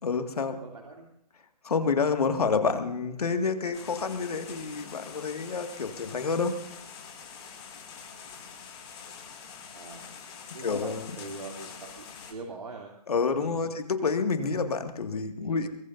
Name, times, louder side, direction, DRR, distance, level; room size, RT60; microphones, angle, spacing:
voice 1, 0.0-0.6 1.6-6.5 10.6-11.1 13.1-15.7, left 5 dB, 70° left, 6 dB, 2.1 m, -28 dB
voice 2, 0.6-1.1 9.7-10.0 10.5-12.9 13.4-13.7 15.4-15.6, right 3 dB, 80° right, -1 dB, 2.9 m, -43 dB
sound 1, 3.7-12.3, left 6 dB, 45° left, 5.8 m, -45 dB
23.0 x 21.5 x 2.7 m, 0.76 s
hypercardioid pair, 150°, 20 cm